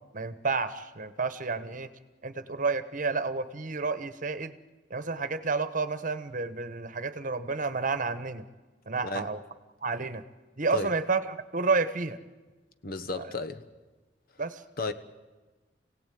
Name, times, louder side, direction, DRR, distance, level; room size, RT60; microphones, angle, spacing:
voice 1, 0.0-1.9 2.2-4.6 4.9-8.4 8.9-9.4 9.8-10.2 10.6-12.2 13.2-13.3 14.4-14.6, right 4 dB, 45° right, 12 dB, 1.2 m, -30 dB
voice 2, 12.8-13.6 14.8-14.9, left 3 dB, 55° left, 10 dB, 1.2 m, -33 dB
26.5 x 17.0 x 9.3 m, 1.3 s
head